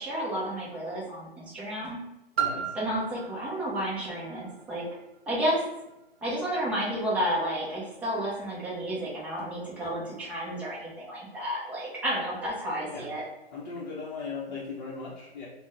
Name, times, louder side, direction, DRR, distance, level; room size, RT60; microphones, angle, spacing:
voice 1, 0.0-2.0 2.7-4.9 5.3-5.6 6.2-13.2, equal, 5° right, -6 dB, 0.4 m, -31 dB
voice 2, 2.4-2.7 12.9-13.1 13.5-15.5, left 4 dB, 45° left, -5 dB, 0.7 m, -37 dB
Piano, 2.4-7.8 8.5-8.6, right 8 dB, 85° right, 0.6 m, -37 dB
2.5 x 2.1 x 3.7 m, 0.94 s
hypercardioid pair, 130°, 31 cm